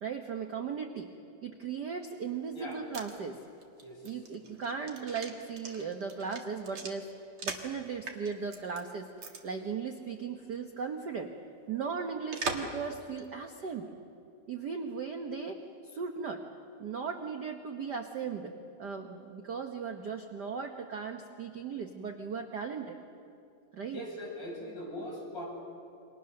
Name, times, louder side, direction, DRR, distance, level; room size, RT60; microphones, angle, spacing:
voice 1, 0.0-1.1 1.4-3.4 4.0-7.1 7.4-9.1 9.4-11.3 11.7-13.9 14.5-16.5 16.8-23.0 23.7-24.0, right 5 dB, 65° right, 4 dB, 1.0 m, -37 dB
sound 1, 2.5-7.7 8.1-8.8 9.2-9.4 9.7-9.8 12.3-12.8 13.2-13.3, right 4 dB, 50° right, 2.3 m, -40 dB
voice 2, 23.9-25.4, equal, 35° left, -4 dB, 8.7 m, -40 dB
29.0 x 25.0 x 6.6 m, 2.6 s
omnidirectional pair, 3.5 m